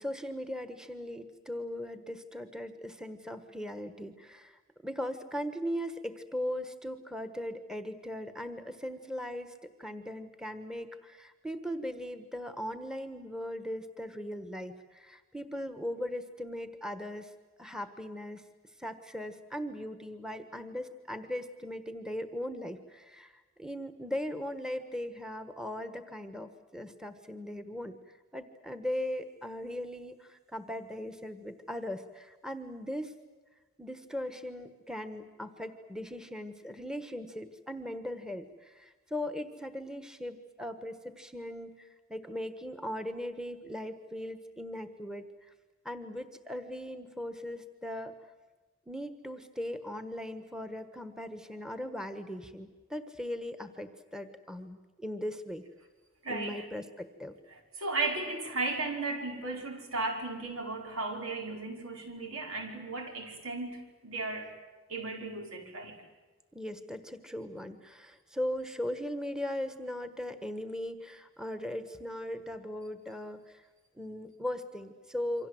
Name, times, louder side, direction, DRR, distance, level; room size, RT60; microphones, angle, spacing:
voice 1, 0.0-17.3 17.6-18.4 18.8-23.3 23.6-28.0 28.3-33.1 33.8-45.3 45.8-48.1 48.9-55.7 56.3-57.3 66.5-73.6 74.0-75.5, left 1 dB, 5° right, 9 dB, 1.3 m, -39 dB
voice 2, 56.2-56.7 57.5-64.5 64.9-66.0, right 3 dB, 85° right, 3 dB, 5.1 m, -35 dB
28.5 x 25.0 x 7.8 m, 1.3 s
head